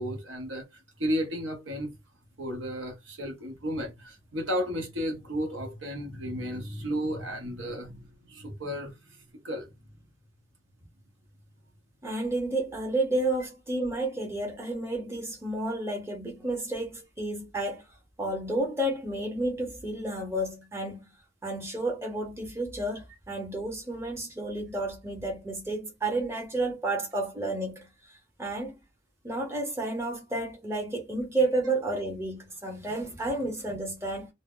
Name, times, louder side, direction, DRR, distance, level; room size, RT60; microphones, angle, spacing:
voice 1, 0.0-1.9 2.4-9.2 9.4-9.7, equal, 70° right, 0.8 m, -33 dB
voice 2, 12.0-17.8 18.2-21.1 21.4-27.9 28.4-28.8 29.2-34.3, right 2 dB, 15° right, 0.8 m, -31 dB
2.0 x 2.0 x 3.6 m
head